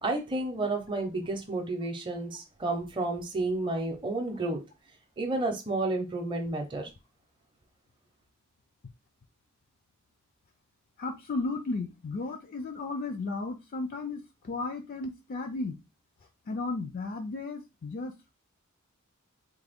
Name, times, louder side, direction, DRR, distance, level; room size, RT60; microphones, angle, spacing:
voice 1, 0.0-4.6 5.2-6.9, right 2 dB, 25° right, 0.6 m, -31 dB
voice 2, 11.0-14.2 14.5-15.7 16.5-18.3, left 3 dB, 40° left, 0.4 m, -34 dB
3.4 x 2.2 x 3.5 m
head